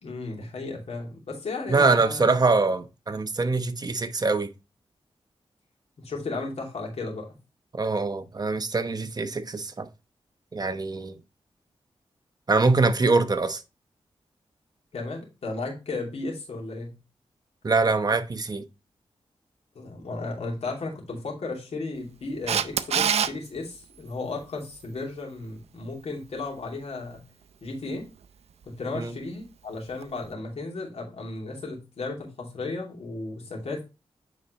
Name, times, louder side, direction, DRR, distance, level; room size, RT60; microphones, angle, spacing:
voice 1, 0.0-2.3 6.0-7.3 14.9-16.9 19.7-27.2 27.6-28.0 28.7-33.8, left 3 dB, 80° left, 2.7 m, -34 dB
voice 2, 1.7-4.5 7.7-9.9 10.5-11.2 12.5-13.6 17.6-18.6 28.9-29.1, right 3 dB, 40° right, 0.9 m, -23 dB
Camera, 22.5-23.3 30.0-30.1, right 8 dB, 85° right, 0.5 m, -23 dB
9.2 x 4.3 x 3.1 m
cardioid pair, 70°, 11 cm